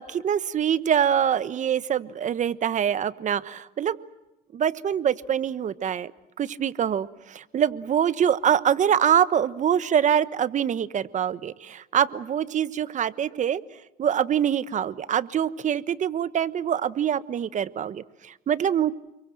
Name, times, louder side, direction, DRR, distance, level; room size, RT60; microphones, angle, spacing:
voice 1, 0.0-4.0 4.5-6.1 6.4-13.6 14.0-18.9, right 9 dB, 45° right, 16 dB, 1.2 m, -24 dB
29.5 x 23.0 x 7.7 m, 0.94 s
cardioid pair, 110°, 17 cm